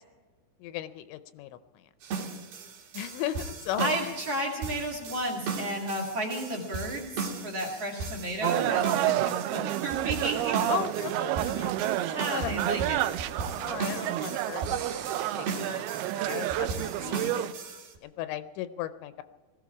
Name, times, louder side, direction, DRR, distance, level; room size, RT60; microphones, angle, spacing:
voice 1, 0.6-1.9 2.9-3.9 10.7-12.5 13.6-14.7 15.4-17.3 18.0-19.2, left 12 dB, 85° left, 11 dB, 2.9 m, -36 dB
sound 1, 2.0-18.0, right 4 dB, 60° right, 3.4 m, -37 dB
voice 2, 3.8-10.6 12.1-13.0, right 1 dB, 45° right, -1 dB, 2.5 m, -33 dB
sound 2, 8.4-17.5, right 13 dB, 85° right, 2.2 m, -29 dB
20.0 x 14.5 x 4.8 m, 1.3 s
omnidirectional pair, 5.2 m